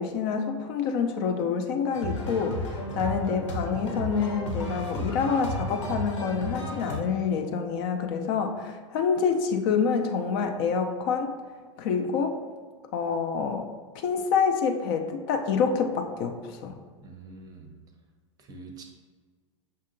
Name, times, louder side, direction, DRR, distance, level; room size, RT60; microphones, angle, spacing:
voice 1, 0.0-11.3 11.8-12.4 12.9-13.7 13.9-16.8, left 6 dB, 45° left, 5 dB, 0.4 m, -27 dB
sound 1, 1.9-7.0, left 1 dB, 70° left, 0.9 m, -33 dB
voice 2, 17.0-17.7 18.4-18.8, right 3 dB, 25° right, 3 dB, 0.6 m, -45 dB
5.5 x 2.7 x 2.5 m, 1.5 s
figure-of-eight pair, 95°, 16 cm